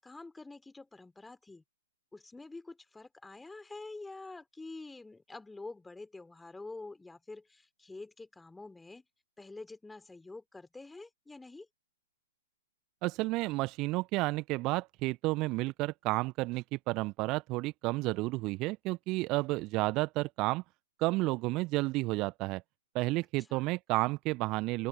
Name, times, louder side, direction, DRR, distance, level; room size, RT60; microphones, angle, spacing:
voice 1, 0.0-1.6 2.1-9.1 9.4-11.7 23.4-23.7, left 3 dB, 5° left, 3.6 m, -47 dB
voice 2, 13.0-20.6 21.0-22.6 22.9-24.9, right 21 dB, 30° right, 1.1 m, -31 dB
open air
figure-of-eight pair, 110°, 0 cm